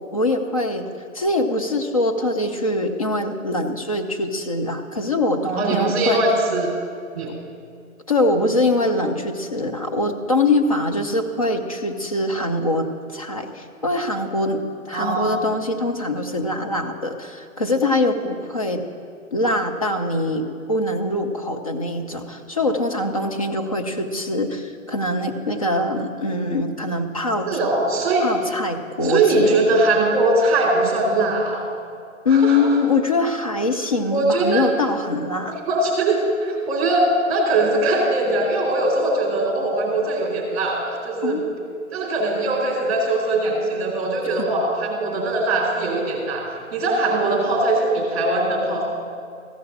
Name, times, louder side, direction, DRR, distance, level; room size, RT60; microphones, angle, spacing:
voice 1, 0.1-0.9 1.1-6.2 7.2-7.3 8.1-18.8 19.3-27.5 28.2-29.8 32.2-35.6 41.2-41.5 44.2-44.5, left 2 dB, 25° left, 4 dB, 0.6 m, -23 dB
voice 2, 5.6-6.7 7.1-7.4 14.9-15.4 27.5-28.3 29.0-31.7 32.3-32.6 34.1-34.7 35.7-41.4 41.9-46.4 46.7-48.8, right 2 dB, 25° right, -1 dB, 2.8 m, -21 dB
14.5 x 5.6 x 8.6 m, 2.3 s
figure-of-eight pair, 155°, 42 cm